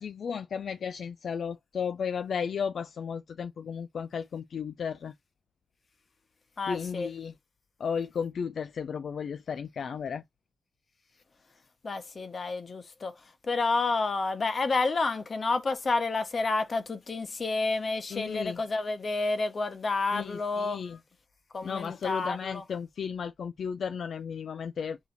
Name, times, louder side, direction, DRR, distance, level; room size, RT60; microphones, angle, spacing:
voice 1, 0.0-5.1 6.7-7.3 7.8-10.2 18.1-18.6 20.1-21.0 21.6-25.0, left 6 dB, 75° left, 0.3 m, -34 dB
voice 2, 6.6-7.1 11.8-13.1 13.5-20.8 21.5-22.6, left 3 dB, 45° left, 1.0 m, -30 dB
4.1 x 2.8 x 4.0 m
wide cardioid pair, 110°, 0 cm